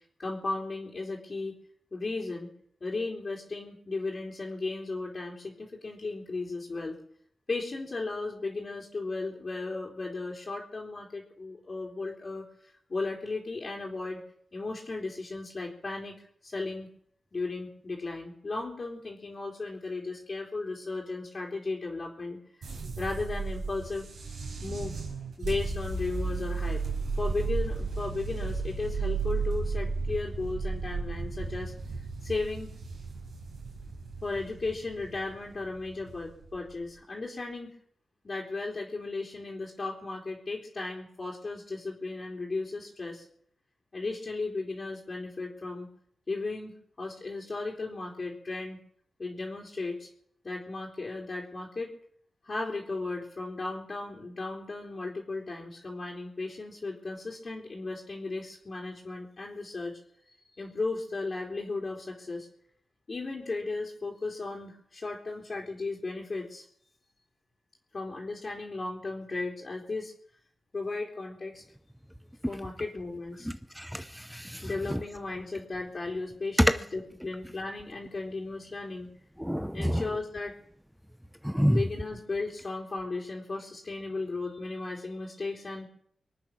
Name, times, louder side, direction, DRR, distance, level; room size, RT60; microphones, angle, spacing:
voice 1, 0.2-1.6 1.9-2.5 2.8-7.0 7.5-14.2 14.5-16.1 16.4-16.9 17.3-22.7 23.0-24.1 24.6-25.0 25.4-26.8 27.2-31.7 32.2-32.7 34.2-37.7 38.2-43.3 43.9-45.9 46.3-48.8 49.2-50.1 50.4-51.9 52.4-60.0 60.6-62.5 63.1-66.6 67.9-70.1 70.7-71.6 72.5-73.5 74.6-79.1 79.7-80.6 81.7-85.9, left 3 dB, 45° left, -4 dB, 3.6 m, -35 dB
sound 1, 22.6-36.8, right 4 dB, 85° right, 4.6 m, -34 dB
voice 2, 73.8-75.0 79.4-80.0 81.4-81.8, equal, ahead, 11 dB, 0.6 m, -29 dB
24.5 x 9.0 x 6.1 m, 0.67 s
cardioid pair, 80°, 0 cm